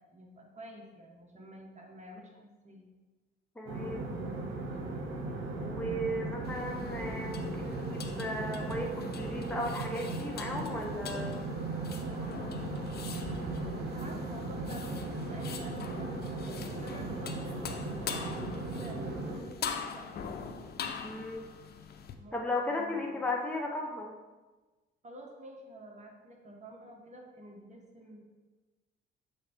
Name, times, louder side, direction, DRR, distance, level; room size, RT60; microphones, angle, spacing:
voice 1, 0.1-2.9 13.7-17.6 18.0-20.3 22.1-22.4 22.7-23.2 25.0-28.2, right 1 dB, 35° right, 0 dB, 1.2 m, -50 dB
voice 2, 3.6-4.1 5.6-11.4 21.0-21.5 22.3-24.1, left 1 dB, 5° left, -1 dB, 0.8 m, -36 dB
sound 1, 3.7-19.4, right 2 dB, 80° right, 1.0 m, -37 dB
sound 2, 6.4-22.1, left 6 dB, 55° left, 0.6 m, -43 dB
6.9 x 3.3 x 4.4 m, 1.2 s
cardioid pair, 90°, 20 cm